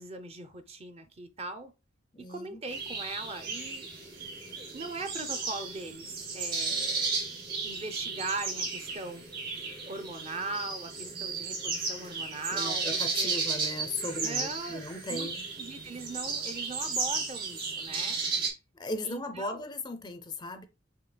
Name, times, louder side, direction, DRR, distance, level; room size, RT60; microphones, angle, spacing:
voice 1, 0.0-1.7 2.2-3.9 4.6-7.1 7.6-9.2 9.8-13.4 14.1-14.8 15.1-15.3 15.6-18.2 19.0-19.6, right 3 dB, 30° right, 0.6 m, -40 dB
voice 2, 2.1-2.6 11.1-11.3 12.5-15.4 18.8-20.6, left 2 dB, 20° left, 0.5 m, -37 dB
sound 1, 2.7-18.5, right 4 dB, 55° right, 2.2 m, -34 dB
6.7 x 3.2 x 2.2 m
head